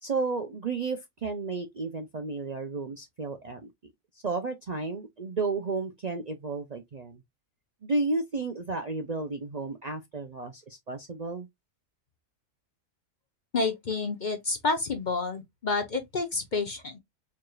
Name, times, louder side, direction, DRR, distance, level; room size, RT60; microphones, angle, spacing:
voice 1, 0.0-3.7 4.2-7.2 7.8-11.5, right 3 dB, 45° right, 0.6 m, -32 dB
voice 2, 13.5-17.0, left 3 dB, 45° left, 0.8 m, -29 dB
4.6 x 3.1 x 2.3 m
omnidirectional pair, 1.4 m